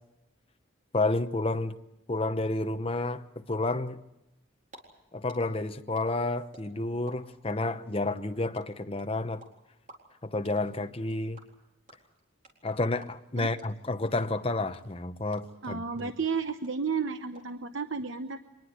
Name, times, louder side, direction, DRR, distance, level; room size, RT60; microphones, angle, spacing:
voice 1, 0.9-1.8 2.1-4.0 5.1-9.4 10.2-11.4 12.6-16.1, left 2 dB, 25° left, 0.9 m, -30 dB
sound 1, 4.4-4.8 5.0-7.1 7.4-15.7 16.0-16.1 16.3-17.4, right 2 dB, 40° right, 4.1 m, -52 dB
voice 2, 15.6-18.4, right 5 dB, 65° right, 0.9 m, -32 dB
24.5 x 20.0 x 8.0 m
head